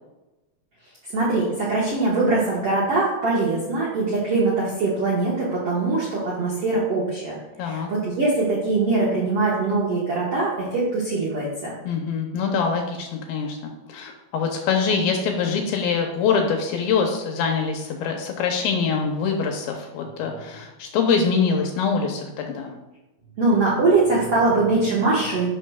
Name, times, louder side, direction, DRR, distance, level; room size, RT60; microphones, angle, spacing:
voice 1, 1.1-7.3 7.6-11.7 20.0-20.1 23.4-25.5, right 3 dB, 70° right, -6 dB, 1.4 m, -22 dB
voice 2, 7.6-7.9 11.8-22.7, left 5 dB, 75° left, 3 dB, 2.3 m, -24 dB
11.0 x 5.7 x 2.3 m, 1.0 s
omnidirectional pair, 4.7 m